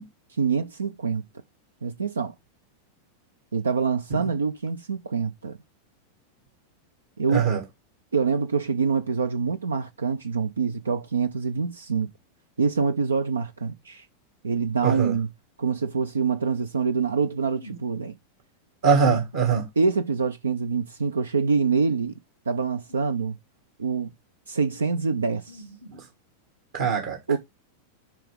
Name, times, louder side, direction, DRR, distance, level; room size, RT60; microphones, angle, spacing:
voice 1, 0.4-1.2 1.8-2.3 3.5-5.6 7.2-7.5 8.1-12.1 12.6-14.1 14.4-15.3 15.6-18.1 19.8-22.2 22.5-23.4 23.8-24.1 24.5-25.6 27.3-27.4, right 5 dB, 85° right, 0.4 m, -25 dB
voice 2, 14.8-15.1 18.8-19.7 25.9-26.0 26.7-27.2, right 6 dB, 65° right, 1.4 m, -22 dB
7.6 x 4.7 x 3.5 m
hypercardioid pair, 95°, 0 cm